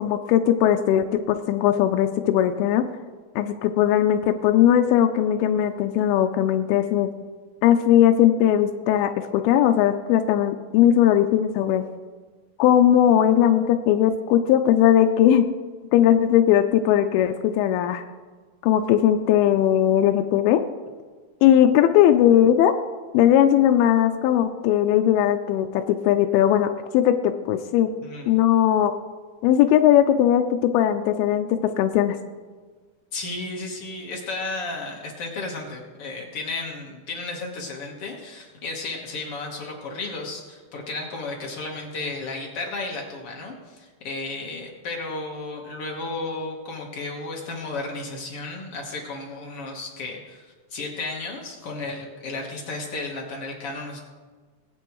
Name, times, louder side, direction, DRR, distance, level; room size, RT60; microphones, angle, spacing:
voice 1, 0.0-2.8 3.4-7.1 7.6-11.8 12.6-15.5 15.9-18.0 18.6-20.6 21.4-22.7 23.1-26.7 26.9-27.9 28.3-28.9 29.4-32.2, left 11 dB, 85° left, 6 dB, 2.4 m, -19 dB
voice 2, 28.0-28.3 33.1-54.0, left 3 dB, 60° left, -1 dB, 1.5 m, -33 dB
21.0 x 8.3 x 3.1 m, 1.4 s
omnidirectional pair, 4.4 m